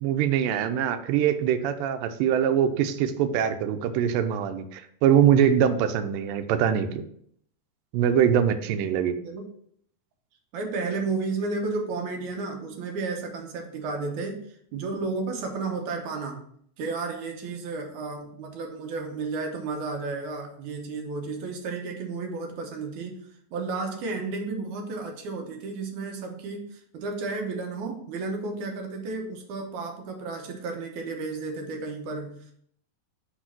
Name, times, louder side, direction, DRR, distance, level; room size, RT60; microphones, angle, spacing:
voice 1, 0.0-7.0 7.9-9.1, right 9 dB, 90° right, 8 dB, 2.3 m, -23 dB
voice 2, 10.5-14.4 14.7-16.4 16.8-32.5, right 3 dB, 70° right, 3 dB, 2.2 m, -32 dB
5.1 x 4.4 x 5.9 m, 0.65 s
omnidirectional pair, 3.9 m